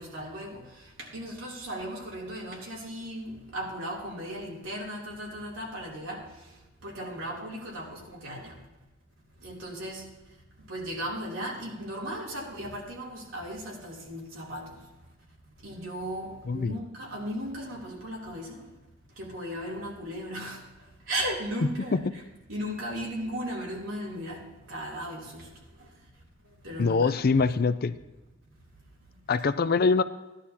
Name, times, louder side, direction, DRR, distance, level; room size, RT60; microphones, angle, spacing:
voice 1, 0.0-6.3 6.8-8.6 9.4-10.1 10.7-14.8 15.6-18.6 19.2-20.7 21.1-22.1 22.5-25.5 25.8-25.9 26.6-27.5, equal, 85° right, -3 dB, 3.2 m, -36 dB
voice 2, 26.8-27.9 29.3-30.0, left 4 dB, 50° left, 13 dB, 0.5 m, -24 dB
16.0 x 11.0 x 2.9 m, 1.1 s
head